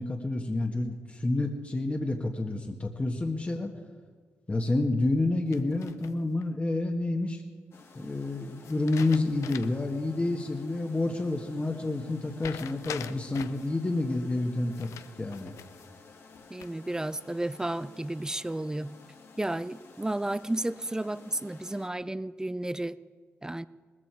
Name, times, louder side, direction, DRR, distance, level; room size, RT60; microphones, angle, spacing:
voice 1, 0.0-3.7 4.5-7.4 7.9-14.9 15.2-15.5, left 2 dB, 25° left, 3 dB, 1.5 m, -29 dB
sound 1, 5.5-6.4 8.6-9.9 10.3-10.4 12.4-13.7 14.7-15.9 16.3-16.9, left 10 dB, 80° left, 0.5 m, -43 dB
sound 2, 7.7-21.9, left 4 dB, 55° left, 1.8 m, -53 dB
voice 2, 16.5-18.9 19.4-23.0 23.4-23.6, right 1 dB, 15° right, 16 dB, 0.5 m, -32 dB
19.5 x 14.0 x 4.7 m, 1.5 s
cardioid pair, 65°, 5 cm